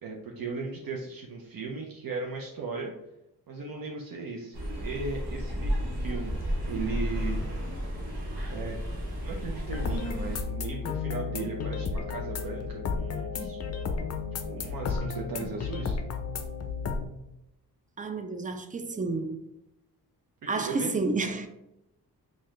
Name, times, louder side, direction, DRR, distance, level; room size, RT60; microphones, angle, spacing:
voice 1, 0.0-2.9 3.5-5.7 6.0-6.3 6.7-7.4 8.5-8.8 9.2-13.6 14.5-16.0 20.5-20.9, right 3 dB, 60° right, 0.7 m, -37 dB
sound 1, 4.5-10.4, equal, 85° right, 1.0 m, -32 dB
sound 2, 9.7-17.1, left 5 dB, 45° left, 0.5 m, -33 dB
voice 2, 18.0-19.4 20.5-21.5, right 3 dB, 20° right, 0.4 m, -30 dB
4.0 x 2.4 x 3.1 m
cardioid pair, 85°, 38 cm